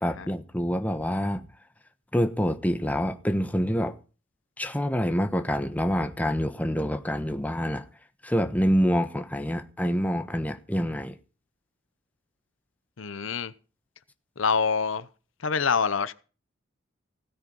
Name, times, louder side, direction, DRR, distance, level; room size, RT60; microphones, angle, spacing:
voice 1, 0.0-1.5 2.1-3.9 4.6-7.8 8.2-11.1, equal, 10° left, 1.1 m, -26 dB
voice 2, 13.0-13.5 14.4-15.1 15.4-16.1, left 5 dB, 85° left, 0.8 m, -26 dB
16.5 x 9.3 x 5.3 m
head